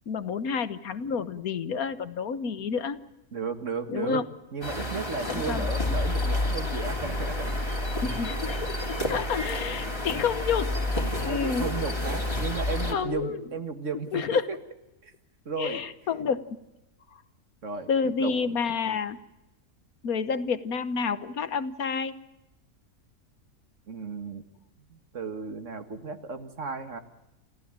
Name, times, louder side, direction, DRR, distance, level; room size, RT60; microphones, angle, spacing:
voice 1, 0.1-3.0 3.9-4.2 5.3-5.7 8.0-10.7 11.1-12.0 12.9-13.4 14.1-14.5 15.6-16.6 17.9-19.2 20.0-22.2, left 6 dB, 75° left, 13 dB, 1.6 m, -29 dB
voice 2, 3.3-4.2 4.5-7.8 11.2-14.4 15.0-15.1 15.5-15.8 17.6-17.9 18.2-18.3 23.9-24.4 24.9-27.0, right 4 dB, 55° right, 8 dB, 2.1 m, -34 dB
sound 1, 4.6-12.9, left 1 dB, 15° left, 2.9 m, -29 dB
29.0 x 14.5 x 8.9 m, 0.96 s
omnidirectional pair, 1.5 m